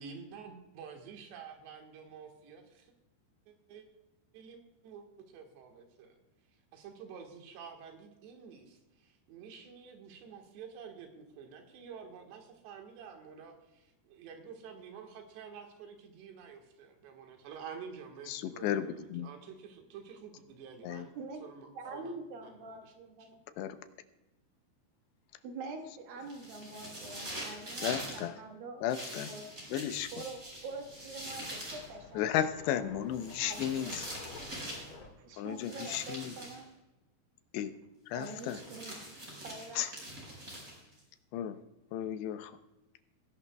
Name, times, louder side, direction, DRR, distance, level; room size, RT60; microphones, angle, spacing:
voice 1, 0.0-2.9 3.5-3.9 4.3-6.2 6.7-21.1 21.4-22.2 22.4-22.9 23.2-23.3, right 6 dB, 80° right, 3 dB, 3.7 m, -49 dB
voice 2, 18.3-19.3 20.8-21.1 23.6-23.8 27.8-28.3 28.8-29.3 29.7-30.1 32.2-34.0 35.4-36.3 37.5-37.7 38.1-38.6 39.7-39.9 41.3-41.6 41.9-42.5, left 10 dB, 85° left, 10 dB, 2.8 m, -34 dB
voice 3, 21.7-23.7 25.4-28.8 29.3-29.4 30.1-34.2 35.2-36.7 38.2-39.0 39.4-39.8, right 3 dB, 65° right, 3 dB, 2.9 m, -45 dB
sound 1, 26.3-28.2 28.9-31.9 33.1-34.9 35.6-36.6 38.2-41.0, right 1 dB, 20° right, 5.1 m, -44 dB
sound 2, 29.9-35.1, left 3 dB, 50° left, 1.7 m, -52 dB
20.0 x 11.5 x 2.3 m, 1.0 s
omnidirectional pair, 4.9 m